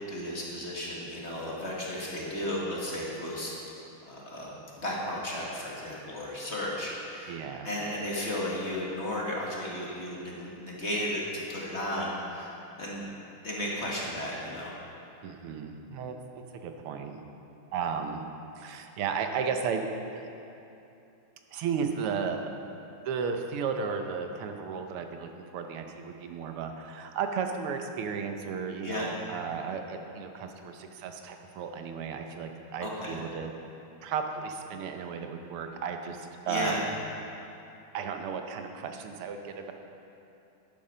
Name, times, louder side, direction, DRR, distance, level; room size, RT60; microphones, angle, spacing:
voice 1, 0.1-3.5 4.1-12.5 12.8-13.1 13.4-14.7 28.8-29.1 32.8-33.2 36.5-36.8, left 1 dB, 35° left, -4 dB, 1.7 m, -34 dB
voice 2, 7.3-7.7 15.2-17.2 17.7-18.2 18.6-19.8 20.1-20.2 21.5-22.5 23.0-33.5 34.0-36.9 37.9-39.7, right 6 dB, 90° right, 5 dB, 1.8 m, -34 dB
12.0 x 8.8 x 5.5 m, 2.8 s
omnidirectional pair, 2.4 m